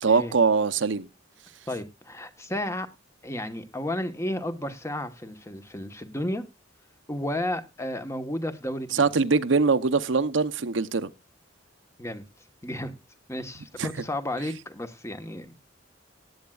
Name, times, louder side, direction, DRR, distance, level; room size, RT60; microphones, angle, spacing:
voice 1, 0.0-1.1 8.9-11.1 13.8-13.9, right 4 dB, 90° right, 0.8 m, -22 dB
voice 2, 1.7-2.9 3.2-6.4 7.1-9.1 12.0-12.2 12.6-12.9 13.3-15.6, left 1 dB, 15° left, 1.2 m, -32 dB
18.5 x 8.8 x 2.4 m
head